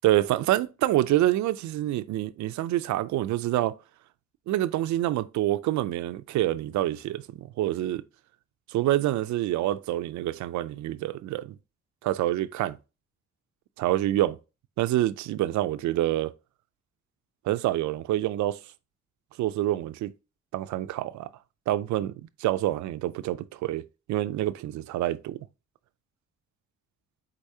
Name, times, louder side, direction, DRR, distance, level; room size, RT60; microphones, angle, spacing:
voice 1, 0.0-3.7 4.5-8.0 8.7-11.5 12.0-12.8 13.8-14.4 14.8-16.3 17.5-18.6 19.4-20.1 20.5-21.3 21.7-22.1 22.4-23.8 24.1-25.4, right 14 dB, 70° right, 0.4 m, -27 dB
4.8 x 4.0 x 2.7 m
cardioid pair, 90°, 30 cm